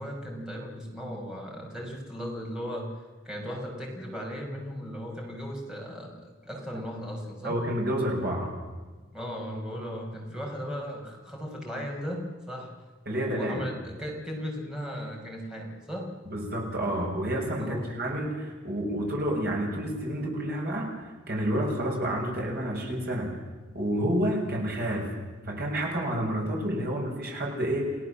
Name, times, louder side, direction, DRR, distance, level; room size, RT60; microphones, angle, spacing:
voice 1, 0.0-2.9 3.2-7.6 9.1-12.7 13.1-16.1 17.6-18.0, equal, 5° right, -1 dB, 5.5 m, -36 dB
voice 2, 7.4-8.5 13.1-13.6 16.3-20.9 21.3-23.3 23.7-25.1 25.4-28.0, right 1 dB, 50° right, 0 dB, 7.4 m, -29 dB
30.0 x 18.5 x 7.6 m, 1.3 s
head